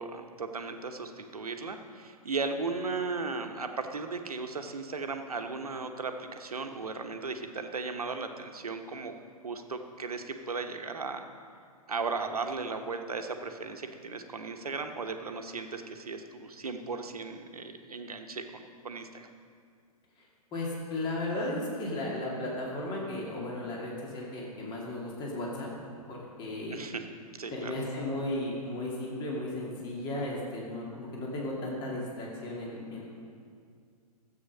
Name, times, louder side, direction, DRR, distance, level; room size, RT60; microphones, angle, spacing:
voice 1, 0.0-9.2 9.4-11.3 11.9-19.3 26.7-27.0 27.4-27.7, right 4 dB, 75° right, 6 dB, 1.1 m, -36 dB
voice 2, 20.5-25.7 26.1-26.8 27.5-33.0, left 1 dB, 25° left, -3 dB, 2.4 m, -35 dB
13.5 x 8.2 x 5.4 m, 2.2 s
figure-of-eight pair, 115°, 19 cm